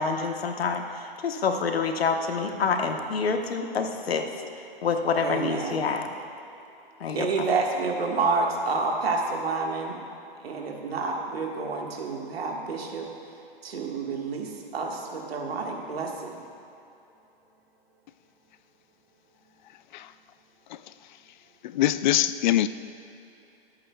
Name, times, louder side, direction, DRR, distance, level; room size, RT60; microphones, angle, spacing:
voice 1, 0.0-4.3 4.8-6.1 7.0-7.3, left 5 dB, 80° left, 1.2 m, -27 dB
voice 2, 5.2-5.8 7.2-10.0 10.4-13.1 13.6-16.5, right 4 dB, 80° right, 1.7 m, -29 dB
voice 3, 21.6-22.7, left 13 dB, 50° left, 0.4 m, -23 dB
22.5 x 8.6 x 2.3 m
hypercardioid pair, 125°, 30 cm